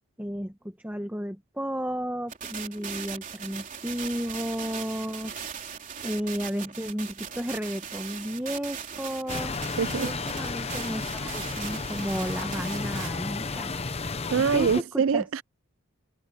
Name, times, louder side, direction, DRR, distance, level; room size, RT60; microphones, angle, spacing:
voice 1, 0.2-5.3 6.0-9.6 10.0-13.8 14.4-15.3, equal, 10° right, 1.1 m, -33 dB
sound 1, 2.3-13.1, right 7 dB, 35° right, 3.6 m, -39 dB
sound 2, 9.3-14.8, left 4 dB, 30° left, 0.8 m, -33 dB
voice 2, 9.8-10.1 14.3-15.4, right 6 dB, 70° right, 0.4 m, -24 dB
head